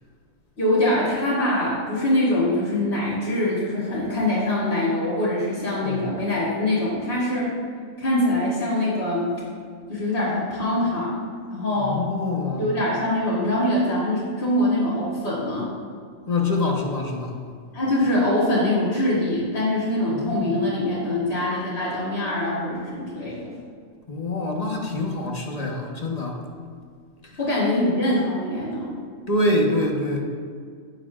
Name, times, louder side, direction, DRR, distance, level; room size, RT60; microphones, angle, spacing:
voice 1, 0.6-7.5 8.0-9.3 9.9-11.1 11.5-12.0 12.6-15.7 17.7-23.6 27.4-28.9, left 1 dB, 55° left, -11 dB, 3.2 m, -23 dB
voice 2, 11.8-12.7 16.3-17.4 20.1-20.6 24.1-26.4 27.2-27.4 29.3-30.2, left 2 dB, 30° left, -1 dB, 1.2 m, -25 dB
17.0 x 6.9 x 2.5 m, 2.1 s
omnidirectional pair, 1.4 m